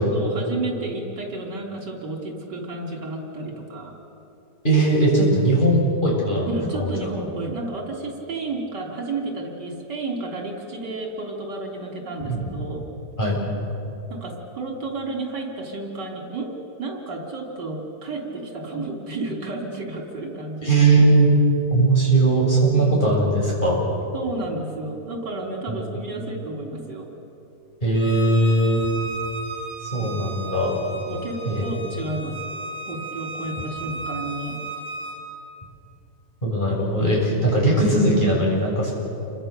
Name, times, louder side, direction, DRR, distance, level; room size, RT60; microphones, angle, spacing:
voice 1, 0.1-3.9 6.5-12.8 14.1-20.7 22.7-23.1 24.1-27.1 30.1-30.3 31.1-32.4 32.9-34.6, right 2 dB, 80° right, 1 dB, 3.8 m, -32 dB
voice 2, 4.6-6.9 12.3-12.4 13.2-13.4 20.6-21.3 21.7-23.8 25.7-25.9 27.8-28.9 29.8-30.8 31.4-31.8 36.4-38.9, right 2 dB, 25° left, -4 dB, 7.3 m, -19 dB
Bowed string instrument, 27.9-35.2, right 2 dB, 10° right, 4.7 m, -35 dB
29.0 x 24.5 x 6.7 m, 2.9 s
omnidirectional pair, 1.8 m